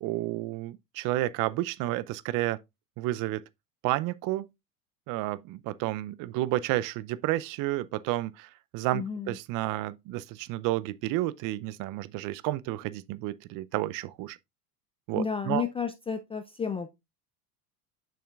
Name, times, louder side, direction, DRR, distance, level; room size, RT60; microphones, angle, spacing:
voice 1, 0.0-2.6 3.0-3.4 3.8-4.5 5.1-14.4 15.1-15.6, right 16 dB, 45° right, 0.5 m, -31 dB
voice 2, 8.9-9.4 15.1-16.9, left 5 dB, 15° left, 0.3 m, -32 dB
7.2 x 5.6 x 2.3 m
hypercardioid pair, 90°, 46 cm